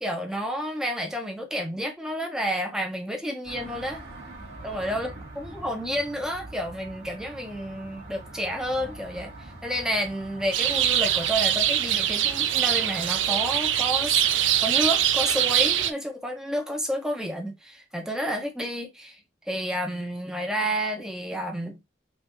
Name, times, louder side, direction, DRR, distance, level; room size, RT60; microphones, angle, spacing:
voice 1, 0.0-4.0 4.6-19.2 19.5-21.8, equal, 5° right, 1.0 m, -30 dB
sound 1, 3.4-11.3, right 2 dB, 65° right, 2.7 m, -43 dB
sound 2, 10.5-15.9, right 10 dB, 90° right, 0.5 m, -23 dB
5.5 x 2.7 x 3.0 m
head